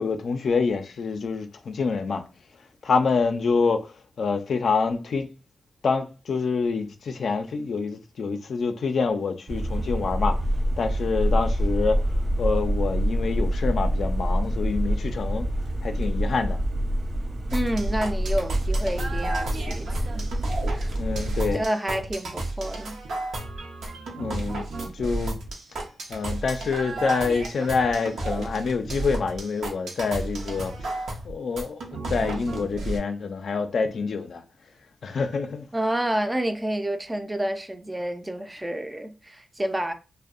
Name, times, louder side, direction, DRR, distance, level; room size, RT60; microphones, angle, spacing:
voice 1, 0.0-2.2 2.8-5.3 5.8-10.4 10.8-12.0 12.4-15.5 15.8-16.6 21.0-21.6 24.1-24.7 24.9-25.4 26.1-31.0 31.2-31.8 32.1-34.4 35.0-35.7, left 4 dB, 70° left, 0.3 m, -26 dB
sound 1, 9.5-21.6, equal, 65° right, 0.9 m, -26 dB
voice 2, 17.5-20.3 20.7-20.9 21.5-23.0 35.7-39.9, right 1 dB, 15° right, 0.4 m, -29 dB
sound 2, 17.5-33.0, right 2 dB, 85° right, 0.6 m, -33 dB
2.6 x 2.0 x 2.4 m
cardioid pair, 70°, 0 cm